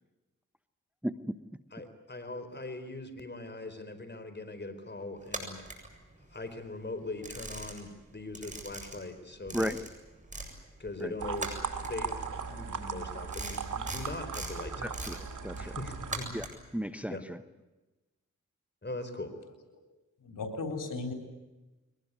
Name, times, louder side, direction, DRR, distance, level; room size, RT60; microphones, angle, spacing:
voice 1, 1.0-1.4 9.5-9.8 11.0-11.1 14.8-15.8 16.3-16.5 16.7-17.4, equal, 5° right, 11 dB, 1.1 m, -34 dB
voice 2, 1.7-5.6 6.3-9.7 10.8-11.6 11.8-14.9 15.6-16.3 17.1-17.2 18.8-19.3, left 2 dB, 35° left, 9 dB, 4.3 m, -41 dB
sound 1, 5.2-6.5 6.9-8.0 8.3-10.5 10.8-16.7, right 2 dB, 25° right, 7.7 m, -41 dB
sound 2, 11.2-16.2, right 5 dB, 80° right, 2.4 m, -38 dB
voice 3, 20.2-21.1, left 3 dB, 85° left, 5 dB, 3.8 m, -36 dB
23.0 x 20.0 x 9.7 m, 1.1 s
cardioid pair, 55°, 31 cm